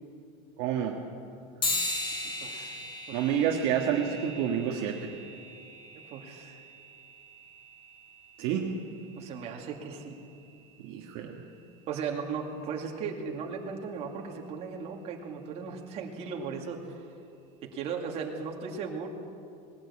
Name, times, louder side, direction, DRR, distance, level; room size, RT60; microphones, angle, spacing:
voice 1, 0.6-1.0 3.1-5.1 8.4-8.8 10.8-11.4, right 8 dB, 50° right, 0 dB, 1.7 m, -29 dB
sound 1, 1.6-11.4, left 2 dB, 25° left, 3.4 m, -39 dB
voice 2, 2.2-2.8 3.1-3.2 6.1-6.6 9.2-10.2 11.9-17.0 17.6-19.1, right 5 dB, 30° right, 1 dB, 2.3 m, -37 dB
20.0 x 17.5 x 8.6 m, 2.5 s
supercardioid pair, 175°, 21 cm